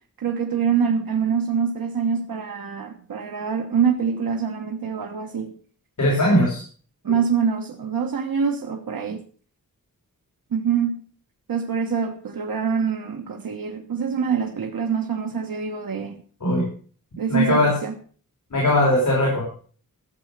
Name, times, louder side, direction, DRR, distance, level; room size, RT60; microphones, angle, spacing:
voice 1, 0.2-5.5 6.3-6.5 7.0-9.2 10.5-11.0 11.5-16.2 17.2-17.9, right 6 dB, 85° right, 2 dB, 1.3 m, -25 dB
voice 2, 6.0-6.6 7.1-7.2 16.4-16.7 17.3-17.7 18.5-19.4, left 1 dB, 60° left, -3 dB, 4.9 m, -19 dB
13.5 x 7.8 x 6.6 m, 0.43 s
wide cardioid pair, 125°, 34 cm